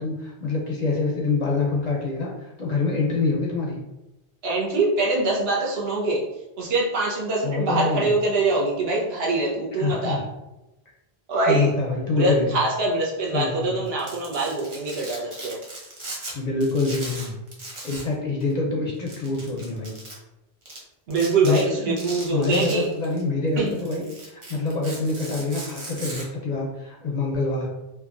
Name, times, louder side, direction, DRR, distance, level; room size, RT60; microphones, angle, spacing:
voice 1, 0.0-3.8 7.4-8.1 9.7-10.2 11.5-12.6 13.3-13.8 16.3-17.4 17.8-20.0 21.4-27.7, left 3 dB, 50° left, -2 dB, 0.5 m, -26 dB
voice 2, 4.4-6.2 6.6-10.2 11.3-11.7 12.1-15.6 21.1-22.9 23.6-23.8, right 3 dB, 70° right, -4 dB, 1.0 m, -24 dB
Domestic sounds home sounds, 13.9-16.3 16.6-18.1 18.4-18.5 19.1-20.1 20.7-20.8 21.1-21.6 22.0-23.2 23.6-26.2, right 2 dB, 35° right, 0.6 m, -38 dB
2.9 x 2.3 x 2.5 m, 0.96 s
omnidirectional pair, 1.1 m